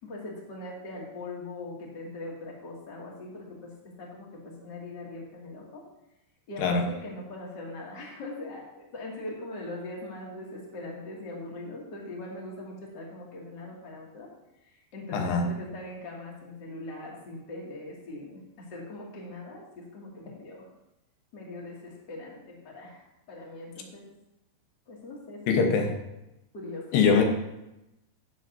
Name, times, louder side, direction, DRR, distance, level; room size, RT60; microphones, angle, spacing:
voice 1, 0.0-5.8 6.5-14.3 14.6-20.7 21.3-24.1 24.9-25.6 26.5-27.1, left 2 dB, 40° left, -3 dB, 1.7 m, -41 dB
voice 2, 15.1-15.5 25.5-25.9 26.9-27.2, left 5 dB, 70° left, 3 dB, 2.8 m, -22 dB
17.5 x 7.1 x 2.7 m, 0.92 s
omnidirectional pair, 5.5 m